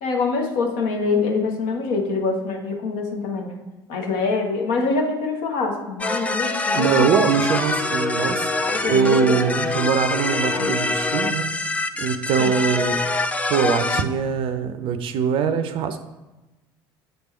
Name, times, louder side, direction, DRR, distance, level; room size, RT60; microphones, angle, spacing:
voice 1, 0.0-3.5 3.9-7.1 8.6-9.4 10.5-10.7 12.4-12.5, left 4 dB, 60° left, 1 dB, 1.1 m, -25 dB
sound 1, 6.0-14.0, left 2 dB, 10° left, 0.4 m, -24 dB
voice 2, 6.7-11.5 12.0-13.0 13.5-16.1, right 6 dB, 45° right, 10 dB, 0.5 m, -22 dB
8.0 x 3.4 x 4.4 m, 1.1 s
figure-of-eight pair, 65°, 12 cm